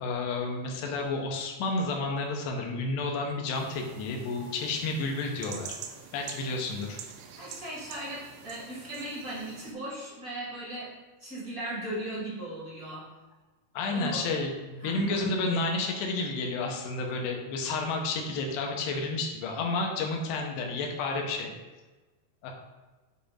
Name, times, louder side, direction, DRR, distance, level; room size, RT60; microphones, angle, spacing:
voice 1, 0.0-5.8 6.1-7.0 13.7-21.5 22.4-22.5, left 3 dB, 85° left, 1 dB, 2.9 m, -31 dB
sound 1, 3.6-9.7, right 8 dB, 85° right, 2.8 m, -46 dB
voice 2, 7.3-10.9 11.2-13.1 13.9-14.3 14.8-15.3, right 1 dB, 35° right, -8 dB, 1.3 m, -37 dB
9.2 x 5.2 x 2.5 m, 1.2 s
omnidirectional pair, 4.9 m